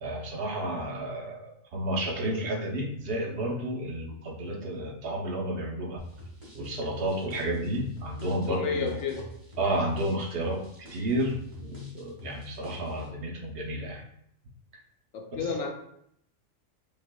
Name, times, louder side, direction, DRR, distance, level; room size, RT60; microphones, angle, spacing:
voice 1, 0.0-6.0 6.5-9.0 9.6-14.0 15.3-15.4, right 1 dB, 50° right, -1 dB, 0.8 m, -31 dB
sound 1, 6.0-13.1, equal, 25° right, 1.2 m, -46 dB
voice 2, 8.3-9.3 15.1-15.7, left 5 dB, 75° left, 3 dB, 1.0 m, -31 dB
5.2 x 2.5 x 2.2 m, 0.72 s
omnidirectional pair, 1.4 m